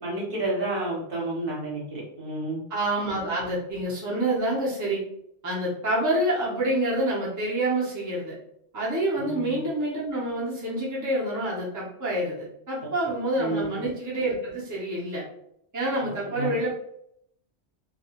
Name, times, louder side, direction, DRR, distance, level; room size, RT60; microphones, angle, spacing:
voice 1, 0.0-2.6 9.2-9.6 13.4-13.8 16.3-16.6, right 2 dB, 50° right, -5 dB, 1.0 m, -30 dB
voice 2, 2.7-5.0 5.4-8.4 8.7-15.2 15.7-16.7, right 1 dB, 20° right, -6 dB, 0.6 m, -27 dB
2.4 x 2.3 x 2.8 m, 0.74 s
omnidirectional pair, 1.2 m